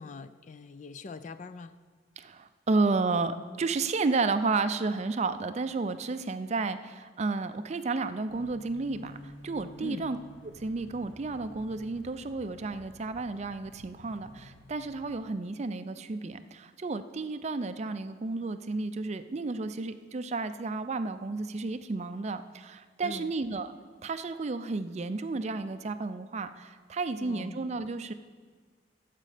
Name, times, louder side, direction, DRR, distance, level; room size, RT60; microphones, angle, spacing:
voice 1, 0.0-1.7 9.8-10.1 23.0-23.3 27.2-27.6, left 3 dB, 40° left, 12 dB, 0.3 m, -42 dB
voice 2, 2.2-10.2 10.4-23.7 24.0-28.1, right 3 dB, 35° right, 10 dB, 0.4 m, -32 dB
sound 1, 8.3-15.2, left 1 dB, 85° left, 1.0 m, -52 dB
13.0 x 7.5 x 5.0 m, 1.5 s
head